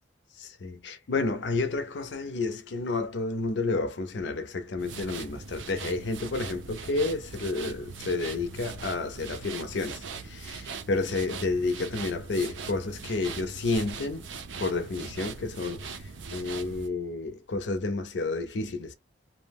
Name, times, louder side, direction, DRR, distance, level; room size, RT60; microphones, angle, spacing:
voice 1, 0.4-14.3 14.6-18.9, left 3 dB, 70° left, 0.5 m, -30 dB
sound 1, 4.8-16.9, right 5 dB, 85° right, 0.5 m, -41 dB
2.6 x 2.0 x 3.4 m
head